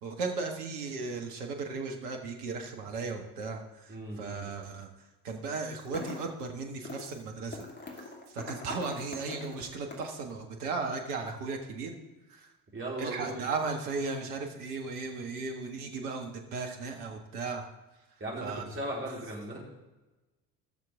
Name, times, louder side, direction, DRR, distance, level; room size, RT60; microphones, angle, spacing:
voice 1, 0.0-4.9 5.2-7.7 8.0-12.0 12.3-12.5 13.0-17.6 18.4-18.6 19.1-19.2, right 4 dB, 70° right, 3 dB, 1.6 m, -36 dB
voice 2, 3.9-4.6 12.7-13.5 18.2-19.6, right 1 dB, 25° right, -4 dB, 4.2 m, -37 dB
sound 1, 5.7-6.4 6.8-7.2 7.5-10.2, left 2 dB, 20° left, 2.5 m, -42 dB
17.5 x 6.7 x 3.7 m, 1.1 s
figure-of-eight pair, 55°, 47 cm